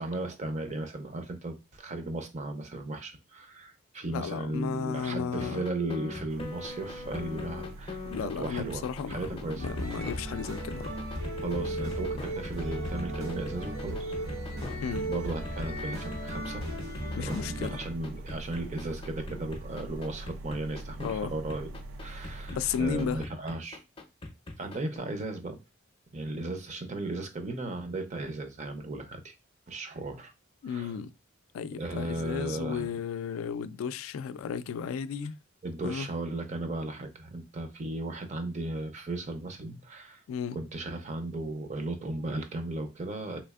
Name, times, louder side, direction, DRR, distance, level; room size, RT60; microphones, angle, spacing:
voice 1, 0.0-9.6 11.4-14.2 15.1-16.6 17.2-21.7 22.0-23.8 24.6-25.6 26.1-29.3 29.7-30.3 30.6-31.0 31.8-32.9 35.6-40.2 40.5-43.4, right 2 dB, 35° right, 0.5 m, -36 dB
voice 2, 4.1-5.6 8.1-10.9 14.8-15.1 17.2-17.8 21.0-21.3 22.5-23.2 30.6-31.1 31.5-35.3 35.8-36.1 40.3-40.6, left 7 dB, 85° left, 0.3 m, -34 dB
sound 1, 5.4-21.1 21.5-25.0, left 2 dB, 25° left, 0.5 m, -41 dB
sound 2, 6.3-23.2, right 1 dB, 90° right, 0.4 m, -43 dB
sound 3, 9.6-17.9, right 1 dB, 75° right, 1.8 m, -36 dB
3.3 x 3.0 x 2.3 m
head